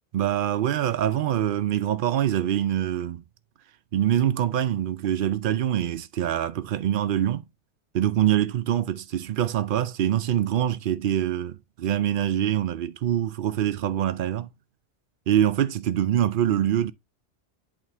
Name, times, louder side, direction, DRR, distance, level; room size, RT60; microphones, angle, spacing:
voice 1, 0.1-3.2 3.9-7.4 7.9-14.5 15.3-16.9, right 11 dB, 60° right, 0.6 m, -24 dB
8.1 x 3.8 x 3.4 m
omnidirectional pair, 1.1 m